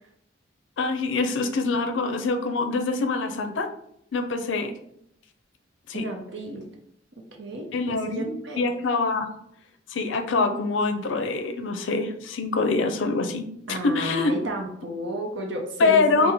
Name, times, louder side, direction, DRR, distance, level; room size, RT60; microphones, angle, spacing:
voice 1, 0.8-3.7 4.1-4.7 5.9-6.0 7.7-9.3 9.9-14.3 15.8-16.3, left 3 dB, 80° left, 7 dB, 0.5 m, -25 dB
voice 2, 5.9-6.7 7.4-8.7 13.7-16.3, right 1 dB, 70° right, 2 dB, 0.7 m, -32 dB
4.6 x 2.1 x 3.4 m, 0.73 s
head